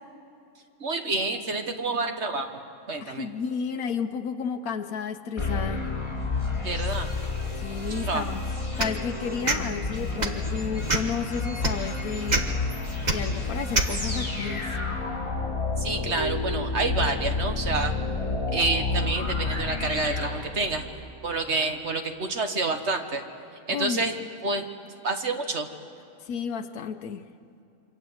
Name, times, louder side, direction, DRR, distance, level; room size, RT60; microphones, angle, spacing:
voice 1, 0.8-2.6 2.9-3.3 6.6-7.1 7.9-8.3 15.8-17.9 18.5-20.8 21.2-23.2 23.7-24.1 24.4-24.7 25.0-25.7, right 3 dB, 50° right, 6 dB, 1.6 m, -28 dB
voice 2, 3.0-5.9 7.6-8.4 8.8-12.5 13.1-14.8 23.7-24.1 26.2-27.2, left 6 dB, 80° left, 5 dB, 1.3 m, -32 dB
sound 1, 5.4-21.0, left 3 dB, 20° left, 6.1 m, -30 dB
sound 2, 8.8-9.0 9.4-9.6 10.2-10.4 10.9-11.2 11.6-11.7 12.3-12.4 13.0-13.2 13.7-13.9, right 2 dB, 30° right, 1.4 m, -24 dB
27.0 x 25.0 x 7.8 m, 2.8 s
omnidirectional pair, 1.5 m